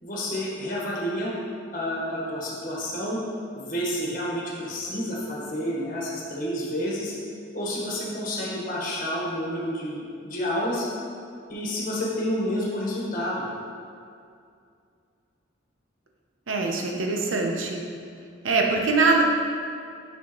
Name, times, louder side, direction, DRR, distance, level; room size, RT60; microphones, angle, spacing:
voice 1, 0.0-1.3 1.7-3.2 3.6-7.1 7.5-10.9 11.5-13.4, equal, 45° left, -5 dB, 1.3 m, -29 dB
voice 2, 16.5-17.8 18.4-19.2, right 3 dB, 90° right, 1 dB, 0.7 m, -23 dB
6.3 x 5.6 x 3.0 m, 2.4 s
head